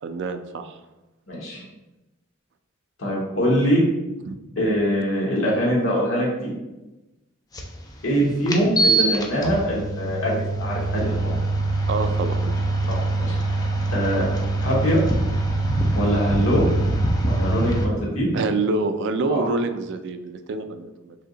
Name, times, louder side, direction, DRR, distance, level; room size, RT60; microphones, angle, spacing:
voice 1, 0.0-0.7 4.3-4.4 11.9-12.5 18.3-21.2, right 3 dB, 60° right, 8 dB, 0.3 m, -26 dB
voice 2, 1.3-1.6 3.0-3.8 4.6-6.5 8.0-10.3 10.6-11.2 12.9-13.4 13.9-14.3 14.6-15.0 15.9-16.6 17.2-18.3 19.3-19.5, equal, 75° left, -4 dB, 1.1 m, -23 dB
sound 1, 7.5-7.6 8.5-17.9, right 2 dB, 20° left, 0.4 m, -23 dB
3.5 x 2.8 x 3.7 m, 1.0 s
head